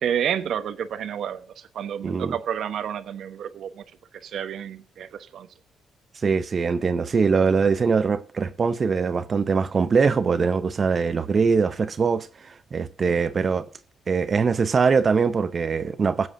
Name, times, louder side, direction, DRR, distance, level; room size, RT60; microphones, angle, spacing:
voice 1, 0.0-3.8 4.1-5.5, right 9 dB, 70° right, 1.0 m, -30 dB
voice 2, 2.0-2.4 6.1-13.7 14.1-16.3, right 5 dB, 40° right, 0.6 m, -22 dB
21.5 x 7.9 x 2.6 m
cardioid pair, 90°, 0 cm